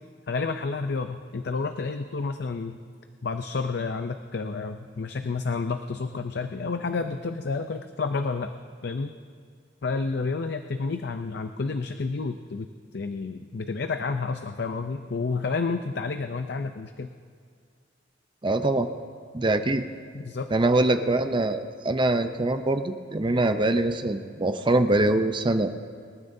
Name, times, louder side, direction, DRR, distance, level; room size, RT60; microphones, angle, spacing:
voice 1, 0.3-2.8 3.2-8.5 8.8-9.1 9.8-12.7 12.9-17.1 20.1-20.5, left 4 dB, 60° left, 7 dB, 0.5 m, -30 dB
voice 2, 18.4-18.9 19.3-19.8 20.5-25.7, right 2 dB, 25° right, 8 dB, 0.6 m, -23 dB
26.0 x 13.0 x 2.7 m, 2.1 s
head